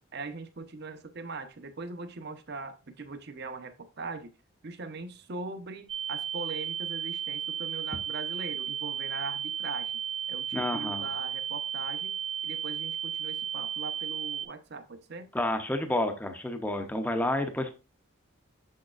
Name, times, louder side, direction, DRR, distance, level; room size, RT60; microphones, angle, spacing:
voice 1, 0.1-4.3 4.6-9.9 10.3-12.2 12.4-15.3, right 3 dB, 50° right, 0.6 m, -40 dB
sound 1, 5.9-14.5, right 9 dB, 80° right, 1.8 m, -34 dB
voice 2, 10.5-11.1 15.3-17.7, left 1 dB, 10° left, 0.5 m, -30 dB
6.5 x 6.4 x 2.4 m
head